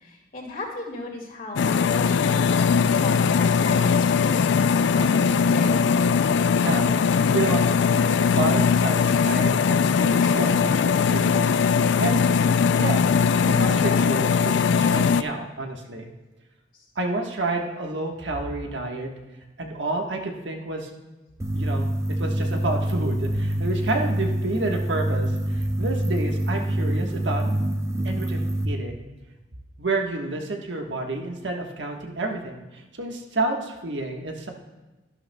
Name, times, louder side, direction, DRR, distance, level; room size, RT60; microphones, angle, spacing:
voice 1, 0.0-6.5 10.2-10.3 16.7-16.8, left 2 dB, 50° left, -1 dB, 2.1 m, -36 dB
sound 1, 1.6-15.2, left 6 dB, 70° left, 0.3 m, -20 dB
voice 2, 6.6-7.6 8.2-11.5 12.0-12.2 12.8-13.1 13.4-16.1 16.9-19.1 19.6-20.9 21.5-21.9 22.2-27.5 28.0-29.1 29.8-34.5, right 2 dB, 80° right, 2 dB, 1.3 m, -29 dB
sound 2, 21.4-28.6, right 1 dB, 15° right, 0.5 m, -26 dB
12.0 x 11.5 x 2.2 m, 1.1 s
head